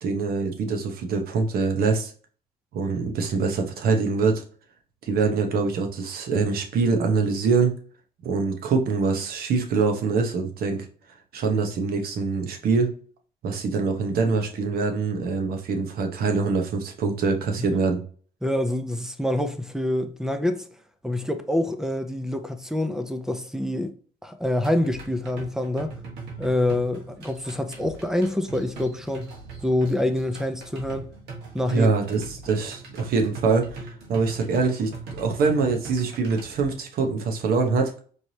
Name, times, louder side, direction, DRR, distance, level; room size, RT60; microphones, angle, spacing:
voice 1, 0.0-2.1 2.7-4.4 5.0-7.7 8.2-10.9 11.3-12.9 13.4-18.0 31.7-37.9, right 4 dB, 65° right, 1.0 m, -24 dB
voice 2, 18.4-20.7 21.0-23.9 24.2-25.9 26.4-29.3 29.6-31.1 31.5-31.9, left 1 dB, 5° right, 0.5 m, -26 dB
sound 1, 24.6-36.6, right 4 dB, 85° right, 1.4 m, -41 dB
4.6 x 3.2 x 2.8 m
cardioid pair, 110°, 17 cm